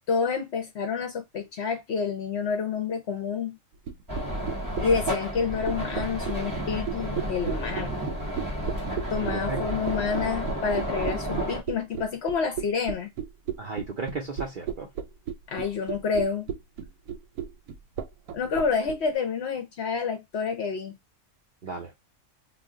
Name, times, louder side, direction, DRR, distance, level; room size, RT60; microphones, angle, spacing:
voice 1, 0.1-3.6 4.8-8.0 9.1-13.1 15.5-16.5 18.3-21.0, left 5 dB, 60° left, 0.8 m, -28 dB
sound 1, 3.9-19.0, right 8 dB, 90° right, 1.1 m, -33 dB
sound 2, 4.1-11.6, equal, 15° right, 0.7 m, -31 dB
voice 2, 9.2-9.6 13.6-14.9 21.6-21.9, right 3 dB, 55° right, 0.5 m, -34 dB
2.4 x 2.2 x 3.6 m
omnidirectional pair, 1.5 m